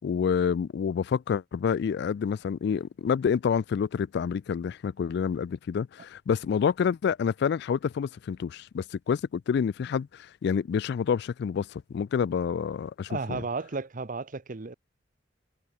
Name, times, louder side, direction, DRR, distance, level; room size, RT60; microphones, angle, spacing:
voice 1, 0.0-13.4, left 7 dB, 60° left, 0.3 m, -28 dB
voice 2, 13.1-14.7, right 4 dB, 45° right, 0.8 m, -33 dB
head